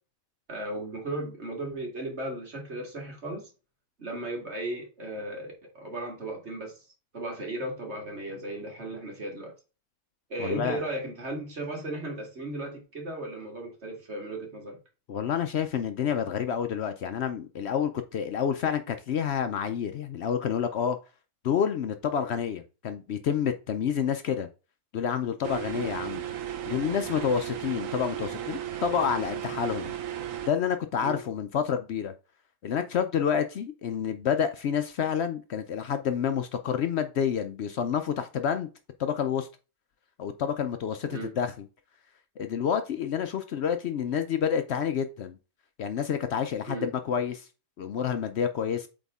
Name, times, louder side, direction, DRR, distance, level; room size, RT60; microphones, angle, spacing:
voice 1, 0.5-3.5 4.0-6.8 7.1-9.5 10.3-14.8 25.7-25.9 31.0-31.2 41.1-41.3 46.7-46.9, right 1 dB, 55° right, 2.3 m, -36 dB
voice 2, 10.4-10.8 15.1-21.0 21.4-24.5 24.9-26.2 26.7-29.9 30.5-32.1 32.6-38.7 39.0-39.5 40.2-41.5 42.4-45.4 45.8-47.5 47.8-48.9, left 8 dB, 65° left, 0.8 m, -28 dB
sound 1, 25.4-30.5, right 11 dB, 80° right, 1.2 m, -35 dB
8.0 x 3.6 x 3.5 m
omnidirectional pair, 1.4 m